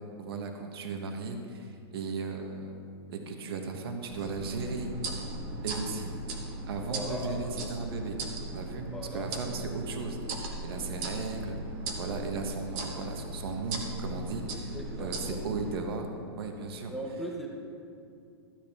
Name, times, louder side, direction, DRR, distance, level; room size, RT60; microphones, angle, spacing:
voice 1, 0.2-2.7 3.1-4.9 5.6-6.1 6.7-8.2 8.5-10.2 10.6-11.6 12.0-16.9, right 4 dB, 60° right, 4 dB, 1.1 m, -36 dB
sound 1, 4.1-15.7, right 2 dB, 25° right, 0.9 m, -38 dB
voice 2, 6.8-7.7 8.9-9.3 14.7-15.4 16.9-17.5, equal, ahead, -2 dB, 0.6 m, -38 dB
13.0 x 8.7 x 3.5 m, 2.5 s
supercardioid pair, 175°, 14 cm